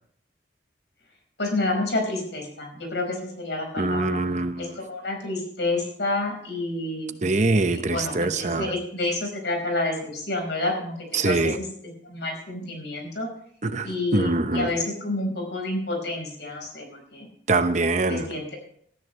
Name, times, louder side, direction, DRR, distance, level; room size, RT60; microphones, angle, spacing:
voice 1, 1.4-4.2 4.6-7.2 7.7-10.9 11.2-13.3 13.8-17.3 18.1-18.6, left 2 dB, 70° left, 2 dB, 5.2 m, -29 dB
voice 2, 3.8-4.8 7.2-8.7 11.1-11.6 13.6-14.7 17.5-18.3, right 2 dB, 40° right, 9 dB, 0.9 m, -24 dB
18.5 x 14.0 x 3.4 m, 0.64 s
head